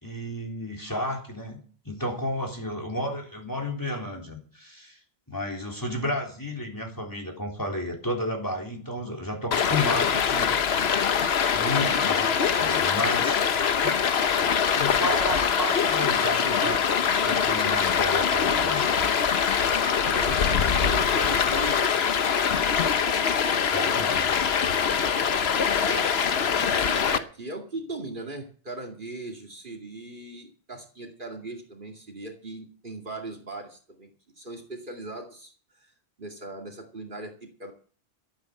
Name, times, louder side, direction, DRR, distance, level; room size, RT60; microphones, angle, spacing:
voice 1, 0.0-1.6 1.9-5.0 5.3-10.8 11.5-13.4 13.8-14.1 14.8-18.9 23.7-24.5, left 1 dB, 20° left, 1 dB, 3.7 m, -32 dB
Stream, 9.5-27.2, left 7 dB, 75° left, 1.2 m, -23 dB
voice 2, 11.7-12.0 20.0-22.3 25.8-34.1 34.4-35.9 36.2-37.7, right 2 dB, 50° right, 2 dB, 2.6 m, -39 dB
13.0 x 9.4 x 7.7 m, 0.42 s
omnidirectional pair, 1.1 m